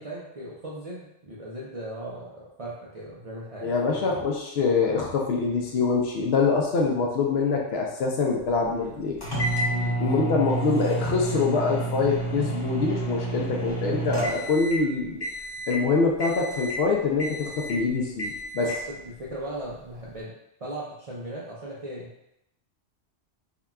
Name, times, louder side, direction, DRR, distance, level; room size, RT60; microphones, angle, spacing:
voice 1, 0.0-3.7 8.7-9.0 9.7-10.0 18.6-18.8 19.0-20.3 20.6-22.3, right 1 dB, 55° right, -6 dB, 0.4 m, -38 dB
voice 2, 3.6-9.2 10.0-15.2 15.7-18.7, left 4 dB, 70° left, 0 dB, 0.8 m, -25 dB
sound 1, 9.2-14.9 15.2-15.8 16.2-16.9 17.2-17.8 18.2-18.8, right 2 dB, 30° left, 0.5 m, -30 dB
3.7 x 2.2 x 2.3 m, 0.83 s
omnidirectional pair, 1.2 m